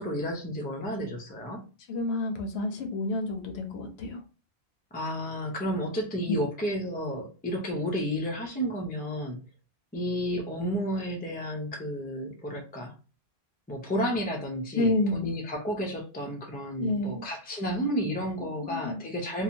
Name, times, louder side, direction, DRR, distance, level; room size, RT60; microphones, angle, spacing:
voice 1, 0.0-1.6 4.9-9.4 9.9-12.9 13.7-19.4, equal, 15° left, 1 dB, 0.3 m, -32 dB
voice 2, 1.9-4.2 6.3-6.4 14.7-15.3 16.8-17.3 18.6-19.0, left 2 dB, 80° left, 5 dB, 0.9 m, -29 dB
2.8 x 2.2 x 2.5 m, 0.34 s
omnidirectional pair, 1.1 m